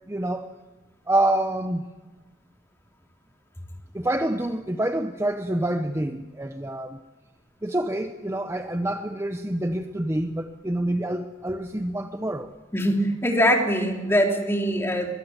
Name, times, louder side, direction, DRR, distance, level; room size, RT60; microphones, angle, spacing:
voice 1, 0.1-0.5 1.1-1.9 3.9-7.0 7.6-12.5, right 1 dB, 15° right, 8 dB, 0.8 m, -27 dB
voice 2, 12.7-15.1, equal, 15° left, 2 dB, 3.5 m, -22 dB
23.0 x 22.5 x 7.4 m, 1.2 s
head